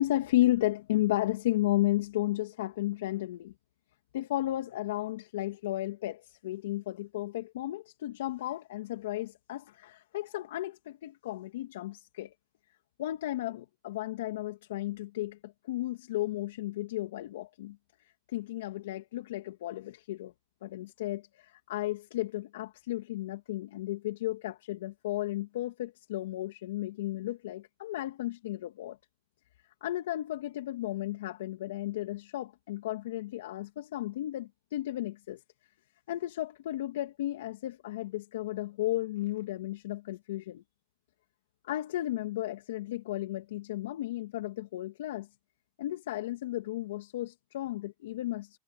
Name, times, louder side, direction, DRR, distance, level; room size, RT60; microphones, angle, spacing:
voice 1, 0.0-3.5 4.1-12.3 13.0-17.8 18.3-20.3 20.6-29.0 29.8-35.4 36.1-40.6 41.6-45.3 45.8-48.6, left 15 dB, 75° left, 2.7 m, -33 dB
supercardioid pair, 150°, 0 cm